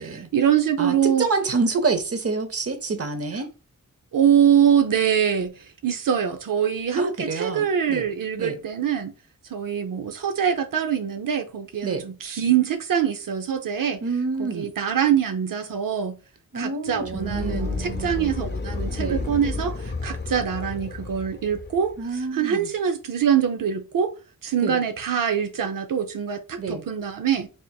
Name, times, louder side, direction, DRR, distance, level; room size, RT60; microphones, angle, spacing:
voice 1, 0.0-1.3 4.1-9.1 9.5-14.0 14.4-16.2 16.5-22.0 22.3-24.1 24.4-27.5, right 8 dB, 80° right, 0.6 m, -24 dB
voice 2, 0.8-3.5 7.0-8.0 8.4-8.6 11.8-12.1 14.0-14.7 16.5-18.3 19.0-19.3 22.0-22.7 24.6-24.8 26.6-26.8, right 4 dB, 45° right, 0.8 m, -28 dB
sound 1, 16.9-22.1, left 3 dB, 35° left, 0.5 m, -32 dB
4.3 x 3.3 x 2.3 m
wide cardioid pair, 100°, 33 cm